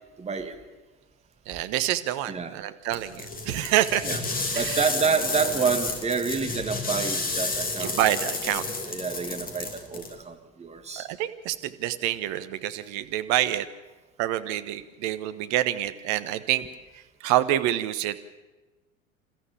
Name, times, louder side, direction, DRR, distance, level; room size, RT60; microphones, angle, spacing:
voice 1, 0.2-0.5 2.3-2.6 4.0-4.2 4.5-8.0 8.9-11.1, right 6 dB, 15° right, 5 dB, 2.0 m, -28 dB
voice 2, 1.5-4.0 4.5-4.9 7.8-8.7 11.0-13.7 14.2-16.6 16.9-18.2, right 13 dB, 45° right, 11 dB, 1.2 m, -27 dB
sound 1, 2.9-10.1, left 3 dB, 20° left, 2.8 m, -31 dB
29.0 x 14.0 x 7.1 m, 1.2 s
figure-of-eight pair, 80°, 40 cm